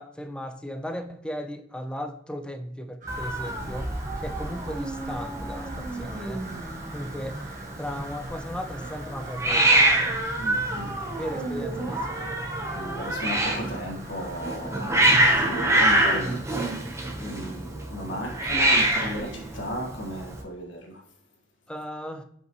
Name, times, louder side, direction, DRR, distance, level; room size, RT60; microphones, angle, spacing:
voice 1, 0.0-6.4 6.9-7.4 7.8-10.1 11.2-12.5 21.7-22.2, equal, 5° left, 6 dB, 0.6 m, -36 dB
sound 1, 3.0-16.6, right 2 dB, 45° right, 1.2 m, -44 dB
Hiss, 3.1-20.4, right 1 dB, 15° right, 0.9 m, -26 dB
voice 2, 10.4-10.9 12.7-16.4 17.2-21.0, equal, 85° left, 0 dB, 1.5 m, -35 dB
8.0 x 5.3 x 3.0 m, 0.72 s
head